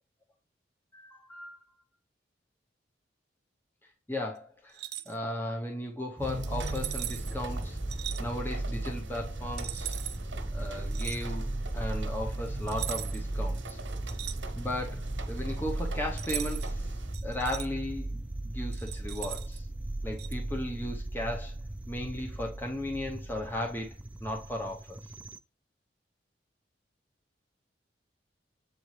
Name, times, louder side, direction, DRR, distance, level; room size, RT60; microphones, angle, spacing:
voice 1, 0.9-1.6 4.1-7.8 8.2-10.0 10.5-13.8 14.6-19.7 20.0-21.5 21.9-25.0, left 1 dB, 10° left, 0.8 m, -36 dB
sound 1, 4.7-5.1 6.6-7.4 7.9-8.2 9.6-10.2 10.9-11.2 12.7-13.3 13.6-14.8 16.2-16.7 17.1-17.7 18.7-19.6 20.2-20.4, right 13 dB, 60° right, 0.6 m, -39 dB
sound 2, 6.2-25.4, right 1 dB, 5° right, 0.3 m, -36 dB
sound 3, 6.2-17.1, right 2 dB, 80° right, 1.0 m, -44 dB
7.9 x 4.1 x 3.2 m
head